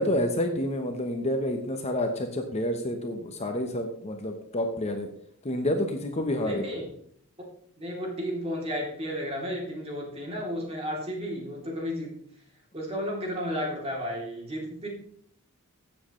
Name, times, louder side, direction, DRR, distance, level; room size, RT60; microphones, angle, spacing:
voice 1, 0.0-5.1 5.4-6.6, left 1 dB, 30° left, 5 dB, 0.9 m, -29 dB
voice 2, 6.4-6.9 7.8-12.2 12.7-14.9, equal, 25° right, -1 dB, 3.0 m, -33 dB
15.5 x 7.5 x 3.2 m, 0.63 s
head